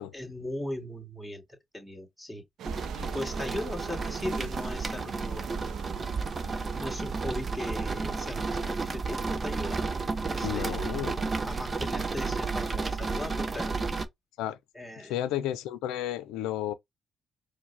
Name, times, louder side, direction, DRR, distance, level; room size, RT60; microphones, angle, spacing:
voice 1, 0.1-1.4 1.7-2.4 2.9-5.5 6.8-10.0 10.3-10.8 11.4-13.8 14.7-15.1, left 1 dB, 10° right, 2.4 m, -38 dB
sound 1, 2.6-14.1, right 4 dB, 35° right, 0.7 m, -32 dB
sound 2, 2.6-10.0, right 9 dB, 75° right, 0.5 m, -44 dB
voice 2, 10.4-11.2 14.4-14.6 15.0-16.7, left 12 dB, 85° left, 0.5 m, -32 dB
4.7 x 2.2 x 3.4 m
supercardioid pair, 65°, 0 cm